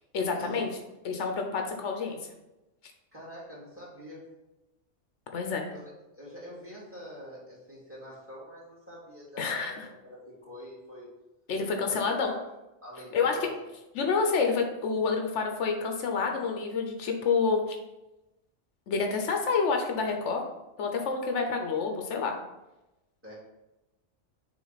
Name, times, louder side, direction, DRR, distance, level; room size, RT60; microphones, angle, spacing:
voice 1, 0.1-0.7 1.0-2.2 5.3-5.7 9.4-9.7 11.5-12.3 13.1-13.5 14.0-17.8 18.9-20.4 20.8-22.4, left 5 dB, 80° left, 3 dB, 1.1 m, -28 dB
voice 2, 3.1-4.3 5.7-9.7 10.0-11.1 11.8-12.4 12.8-13.6 23.2-23.3, equal, 10° right, -6 dB, 2.2 m, -45 dB
6.3 x 3.7 x 4.0 m, 0.98 s
omnidirectional pair, 1.2 m